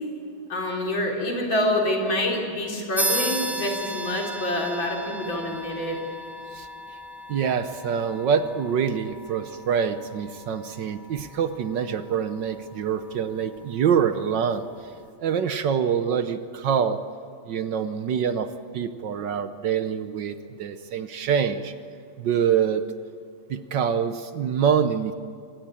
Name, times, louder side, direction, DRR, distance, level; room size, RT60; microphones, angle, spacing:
voice 1, 0.5-6.0, left 1 dB, 65° left, 0 dB, 4.6 m, -26 dB
sound 1, 3.0-12.9, equal, ahead, 1.6 m, -35 dB
voice 2, 7.3-14.7 15.2-17.0 17.5-21.7 22.2-22.8 23.5-25.1, right 7 dB, 65° right, 10 dB, 1.4 m, -25 dB
23.5 x 18.0 x 9.0 m, 2.4 s
omnidirectional pair, 2.3 m